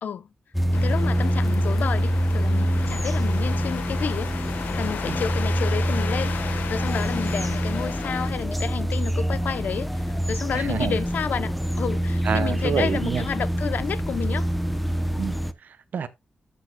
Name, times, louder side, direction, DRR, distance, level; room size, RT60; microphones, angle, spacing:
sound 1, 0.5-15.5, equal, ahead, 0.7 m, -25 dB
sound 2, 0.7-8.3, left 7 dB, 90° left, 1.3 m, -35 dB
voice 1, 0.7-4.3 4.8-14.5, left 7 dB, 70° left, 0.7 m, -31 dB
voice 2, 10.5-11.0 12.2-13.2 15.2-16.1, right 7 dB, 70° right, 0.8 m, -28 dB
14.0 x 6.5 x 2.2 m
wide cardioid pair, 110°, 3 cm